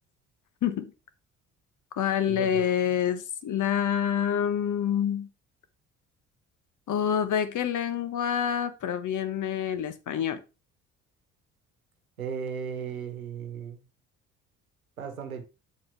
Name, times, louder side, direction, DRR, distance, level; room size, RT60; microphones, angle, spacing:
voice 1, 0.6-0.9 2.0-5.3 6.9-10.4, left 9 dB, 45° left, 1.3 m, -27 dB
voice 2, 2.3-2.6 12.2-13.8 15.0-15.4, right 6 dB, 90° right, 1.2 m, -36 dB
7.6 x 6.5 x 3.4 m
figure-of-eight pair, 50°, 41 cm